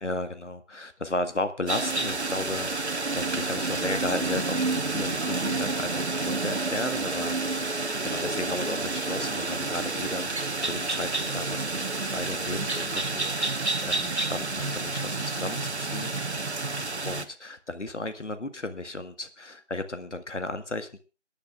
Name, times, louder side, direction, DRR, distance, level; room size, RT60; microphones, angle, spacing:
voice 1, 0.0-16.1 17.0-21.0, left 2 dB, 75° left, 9 dB, 1.6 m, -35 dB
sound 1, 1.7-17.3, right 3 dB, 65° right, 1.2 m, -29 dB
26.0 x 10.5 x 2.4 m, 0.31 s
figure-of-eight pair, 175°, 36 cm